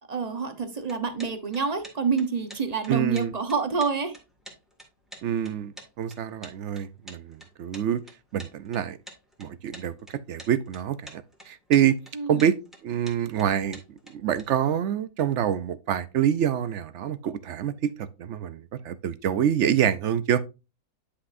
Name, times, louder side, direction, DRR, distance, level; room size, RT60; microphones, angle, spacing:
voice 1, 0.1-4.2 12.1-12.4, right 5 dB, 30° right, 0.9 m, -27 dB
sound 1, 0.8-14.4, equal, ahead, 1.9 m, -47 dB
voice 2, 2.9-3.3 5.2-8.0 8.3-9.0 9.4-12.0 12.3-12.6 12.8-13.8 14.1-17.9 18.2-20.4, right 9 dB, 65° right, 0.8 m, -26 dB
9.9 x 5.8 x 2.5 m
omnidirectional pair, 1.4 m